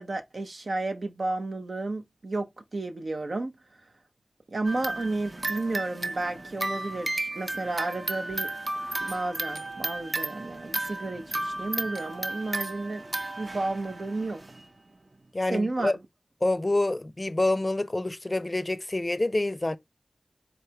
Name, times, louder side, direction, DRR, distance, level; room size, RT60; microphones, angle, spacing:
voice 1, 0.0-3.5 4.5-8.5 9.0-13.0 13.4-14.4 15.5-15.9, right 2 dB, 90° right, 0.7 m, -32 dB
sound 1, 4.6-14.6, right 2 dB, 50° right, 0.6 m, -34 dB
voice 2, 15.3-16.0 16.4-19.8, left 2 dB, 40° left, 0.4 m, -27 dB
4.0 x 3.3 x 2.8 m
wide cardioid pair, 55°, 0 cm